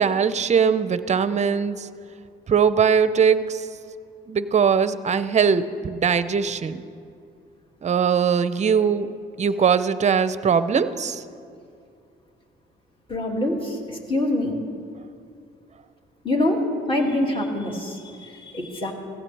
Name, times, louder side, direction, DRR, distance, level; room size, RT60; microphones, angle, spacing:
voice 1, 0.0-1.9 2.5-3.7 4.3-6.8 7.8-9.1 9.4-11.2, right 6 dB, 35° right, 13 dB, 0.6 m, -21 dB
voice 2, 13.1-14.5 16.2-16.6 16.9-18.9, left 1 dB, 25° left, 0 dB, 2.4 m, -25 dB
16.0 x 15.5 x 3.4 m, 2.4 s
cardioid pair, 90°, 20 cm